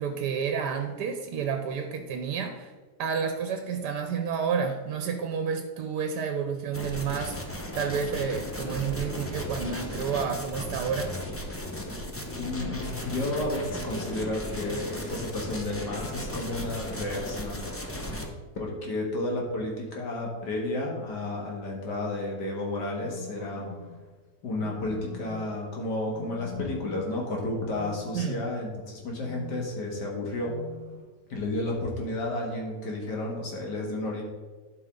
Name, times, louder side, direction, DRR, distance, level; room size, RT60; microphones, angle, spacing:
voice 1, 0.0-2.7 3.0-11.1 28.1-28.4, right 6 dB, 85° right, 5 dB, 1.3 m, -30 dB
sound 1, 6.7-18.3, left 1 dB, 15° left, 0.5 m, -36 dB
voice 2, 12.3-18.0 18.6-23.7 24.4-30.5 31.3-34.2, left 2 dB, 90° left, -1 dB, 2.3 m, -32 dB
sound 2, 23.0-24.0 24.6-25.6 26.1-27.2 27.7-28.7 29.1-29.8 30.4-31.1, left 7 dB, 35° left, 2.2 m, -44 dB
11.5 x 5.5 x 3.7 m, 1.4 s
omnidirectional pair, 1.8 m